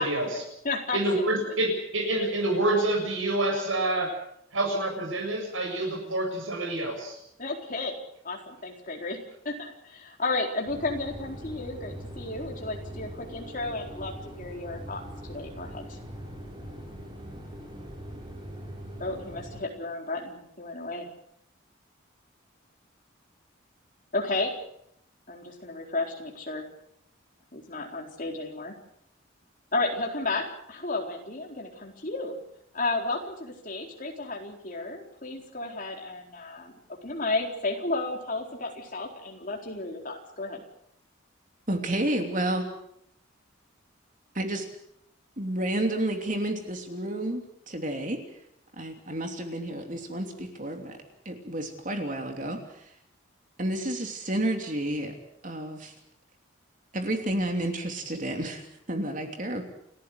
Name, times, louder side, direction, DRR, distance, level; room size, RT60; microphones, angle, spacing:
voice 1, 0.0-1.6 7.4-8.0 8.2-16.0 19.0-21.1 24.1-24.5 25.3-26.7 27.5-28.7 29.7-32.3 32.7-36.7 37.0-40.6, left 2 dB, 40° left, 1 dB, 4.2 m, -33 dB
voice 2, 0.9-4.1 4.5-7.2, right 1 dB, 75° right, 2 dB, 7.3 m, -27 dB
sound 1, 10.7-19.6, equal, 25° right, 6.1 m, -41 dB
voice 3, 41.7-42.7 44.3-44.6 45.4-48.2 48.8-51.0 51.2-52.9 53.6-55.2 55.4-55.9 56.9-59.6, right 1 dB, 40° right, 4 dB, 3.1 m, -30 dB
30.0 x 14.0 x 8.1 m, 0.74 s
head